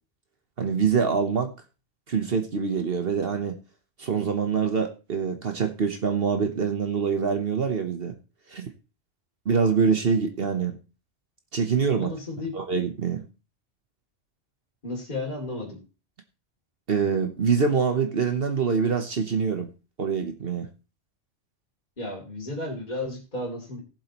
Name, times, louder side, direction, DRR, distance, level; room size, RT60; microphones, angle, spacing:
voice 1, 0.6-1.5 2.1-3.6 4.0-8.2 8.5-8.7 9.5-10.8 11.5-12.1 12.5-13.3 16.9-19.7 20.0-20.7, right 6 dB, 50° right, 1.2 m, -25 dB
voice 2, 11.9-12.5 14.8-15.8 22.0-23.8, left 2 dB, 35° left, 3.1 m, -33 dB
17.5 x 7.6 x 3.0 m
omnidirectional pair, 1.3 m